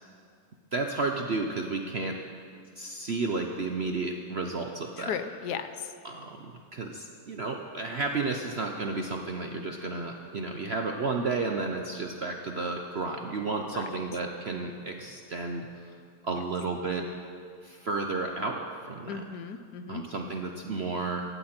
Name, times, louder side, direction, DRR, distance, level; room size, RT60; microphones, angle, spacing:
voice 1, 0.7-2.2 2.8-5.2 6.0-15.7 16.2-17.1 17.6-18.6 18.9-19.2 19.9-21.2, right 3 dB, 50° right, 3 dB, 0.9 m, -32 dB
voice 2, 5.0-5.9 13.7-13.9 19.1-20.0, left 7 dB, 85° left, 10 dB, 1.4 m, -36 dB
17.5 x 15.0 x 4.4 m, 2.3 s
omnidirectional pair, 1.7 m